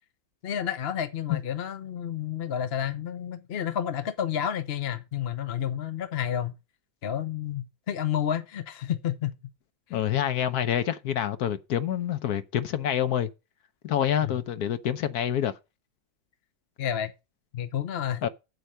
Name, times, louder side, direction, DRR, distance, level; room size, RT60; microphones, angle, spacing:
voice 1, 0.4-6.5 7.0-9.3 9.9-10.0 14.2-14.4 16.8-17.1 17.5-18.3, left 9 dB, 50° left, 0.8 m, -30 dB
voice 2, 9.9-13.3 13.8-15.5 18.2-18.3, left 10 dB, 65° left, 1.1 m, -27 dB
8.1 x 7.9 x 5.5 m
omnidirectional pair, 2.0 m